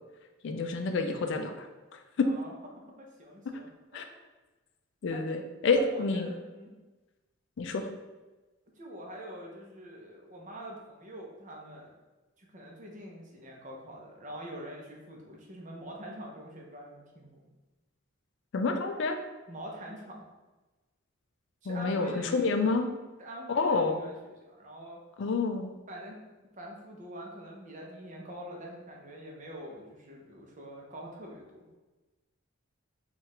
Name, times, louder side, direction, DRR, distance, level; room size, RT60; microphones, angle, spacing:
voice 1, 0.4-1.7 2.2-2.3 3.9-4.0 5.0-6.3 7.6-7.9 18.5-19.2 21.7-22.9 23.5-24.0 25.2-25.7, left 4 dB, 60° left, 6 dB, 0.4 m, -28 dB
voice 2, 2.2-2.5 3.0-4.0 5.1-5.2 5.7-6.7 8.8-11.9 12.4-17.4 19.5-20.2 21.6-22.6 23.2-25.0 25.9-26.2 26.5-31.7, equal, 35° right, -1 dB, 0.7 m, -45 dB
4.5 x 2.4 x 3.2 m, 1.2 s
head